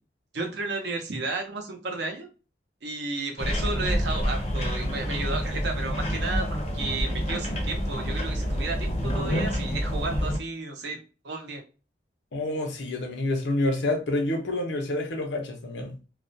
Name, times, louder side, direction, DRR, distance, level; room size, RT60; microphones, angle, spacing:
voice 1, 0.3-2.3 2.8-6.5 6.7-11.0 11.2-11.6, right 3 dB, 70° right, 0.6 m, -33 dB
sound 1, 3.4-10.4, equal, 35° left, 0.5 m, -28 dB
voice 2, 12.3-16.0, left 2 dB, 85° left, 0.6 m, -28 dB
2.3 x 2.1 x 2.6 m
head